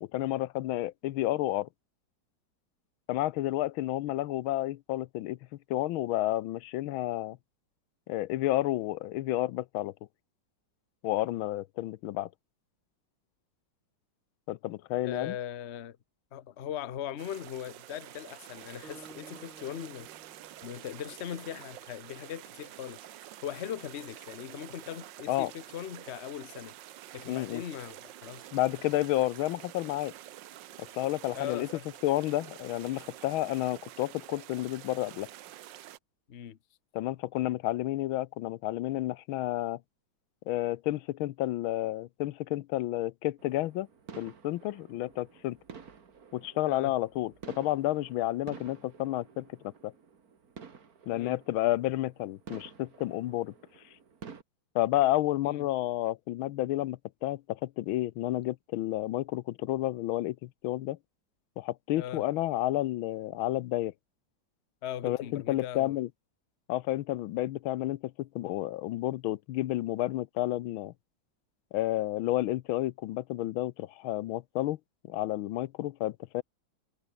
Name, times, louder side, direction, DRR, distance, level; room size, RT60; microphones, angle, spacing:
voice 1, 0.0-1.7 3.1-5.4 5.7-7.4 8.1-9.9 11.0-12.3 14.5-15.3 25.3-25.5 27.3-27.6 28.5-30.1 30.8-31.7 32.0-35.3 36.9-39.8 40.5-43.9 44.2-45.6 46.3-49.6 49.8-49.9 51.1-53.5 54.7-61.0 61.6-63.9 65.0-66.1 66.7-70.9 71.7-74.8 75.1-76.4, left 15 dB, 85° left, 1.5 m, -31 dB
voice 2, 15.0-16.0 16.3-20.1 20.6-23.1 23.4-26.8 27.1-28.5 31.3-31.8 36.3-36.6 46.7-46.9 51.1-51.4 55.4-55.7 62.0-62.2 64.8-66.0, left 10 dB, 45° left, 0.9 m, -39 dB
sound 1, 17.2-36.0, right 13 dB, 70° right, 1.4 m, -48 dB
Acoustic guitar, 18.8-21.6, right 4 dB, 90° right, 5.2 m, -55 dB
sound 2, 43.4-54.4, right 6 dB, 45° right, 2.3 m, -51 dB
omnidirectional pair, 2.2 m